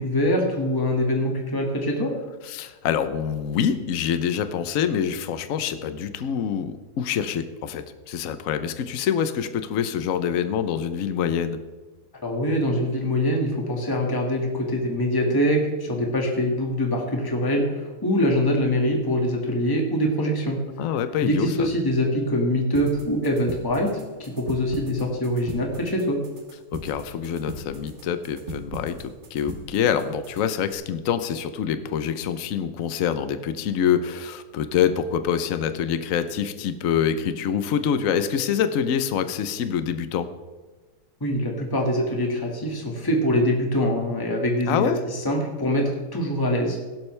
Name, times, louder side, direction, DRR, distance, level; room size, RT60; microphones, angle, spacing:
voice 1, 0.0-2.1 12.2-20.6 21.2-23.9 24.2-26.2 41.2-46.8, equal, 15° left, 0 dB, 1.8 m, -24 dB
voice 2, 2.4-11.6 20.8-21.7 26.7-40.3 44.7-45.0, left 8 dB, 65° left, 10 dB, 1.1 m, -26 dB
sound 1, 22.7-30.7, right 2 dB, 45° right, 1.6 m, -40 dB
17.0 x 11.5 x 3.3 m, 1.3 s
omnidirectional pair, 1.7 m